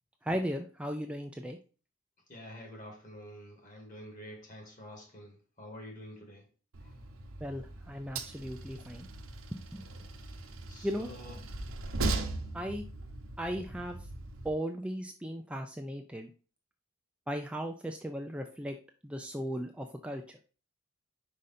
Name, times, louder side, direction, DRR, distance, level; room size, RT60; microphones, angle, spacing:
voice 1, 0.2-1.6 7.4-9.1 9.5-9.8 10.8-11.1 12.5-12.8 13.4-14.0 14.4-16.3 17.3-18.8 19.0-20.4, equal, 5° right, 0.4 m, -36 dB
voice 2, 2.3-6.4 10.7-11.4, left 1 dB, 40° left, 2.1 m, -48 dB
Train, 6.7-14.5, right 2 dB, 85° right, 0.9 m, -39 dB
5.3 x 5.0 x 4.2 m
head